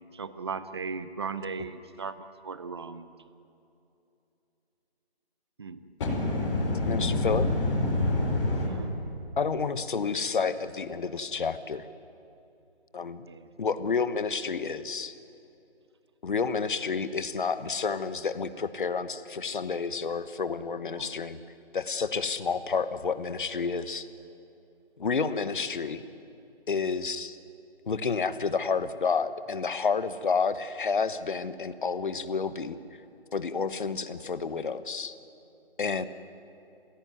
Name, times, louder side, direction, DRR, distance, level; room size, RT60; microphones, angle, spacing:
voice 1, 0.1-3.1 5.6-5.8 8.4-8.9 13.2-13.5 20.8-21.1, right 5 dB, 25° right, 13 dB, 0.6 m, -38 dB
voice 2, 6.0-8.7, left 2 dB, 25° left, -5 dB, 5.0 m, -26 dB
voice 3, 6.9-7.5 9.4-11.9 12.9-13.2 13.6-15.1 16.2-21.4 21.7-24.1 25.0-26.0 26.7-27.4 27.9-32.8 33.3-35.1 35.8-36.1, left 5 dB, 50° left, 13 dB, 1.2 m, -30 dB
26.5 x 16.5 x 9.5 m, 2.8 s
figure-of-eight pair, 155°, 32 cm